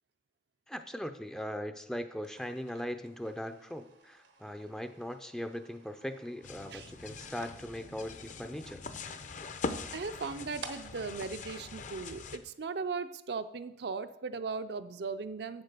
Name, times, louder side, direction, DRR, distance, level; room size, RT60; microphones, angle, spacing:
voice 1, 0.7-8.8, equal, 5° left, 8 dB, 0.4 m, -39 dB
sound 1, 2.1-12.5, right 4 dB, 85° right, 1.2 m, -55 dB
sound 2, 6.4-12.4, left 4 dB, 45° left, 0.6 m, -42 dB
voice 2, 9.9-15.6, right 4 dB, 65° right, 10 dB, 0.5 m, -38 dB
8.0 x 8.0 x 6.7 m, 0.88 s
head